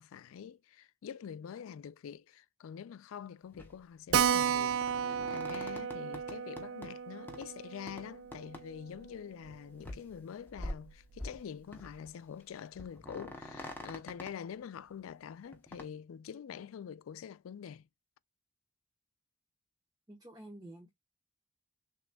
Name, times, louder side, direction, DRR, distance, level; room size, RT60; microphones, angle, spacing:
voice 1, 0.0-17.9, left 8 dB, 85° left, 0.3 m, -46 dB
sound 1, 3.5-3.7 4.1-6.9 7.3-7.5 7.9-8.0 8.3-8.6 8.9-9.0 9.5-9.6 9.8-10.1 10.5-11.4 11.7-12.1 12.4-12.5 12.7-14.3 15.5-15.8, left 1 dB, 10° left, 1.0 m, -45 dB
Keyboard (musical), 4.1-9.2 9.5-9.6 9.8-9.9 10.2-10.3 10.9-11.2, right 8 dB, 85° right, 0.3 m, -33 dB
voice 2, 20.1-20.9, right 1 dB, 20° right, 1.0 m, -49 dB
6.4 x 3.0 x 2.2 m
head